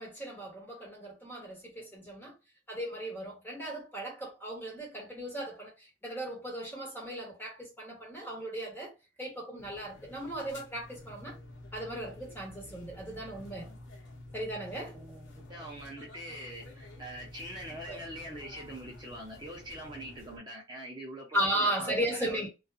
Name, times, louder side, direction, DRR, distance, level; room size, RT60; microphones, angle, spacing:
voice 1, 0.0-2.3 2.7-8.9 9.2-11.4 11.7-13.7 14.3-15.0 17.9-18.0 21.3-22.5, right 1 dB, 10° left, 1.0 m, -36 dB
sound 1, 9.6-20.4, left 1 dB, 85° left, 0.7 m, -50 dB
voice 2, 14.9-22.5, right 1 dB, 25° right, 0.6 m, -44 dB
2.6 x 2.3 x 2.4 m
head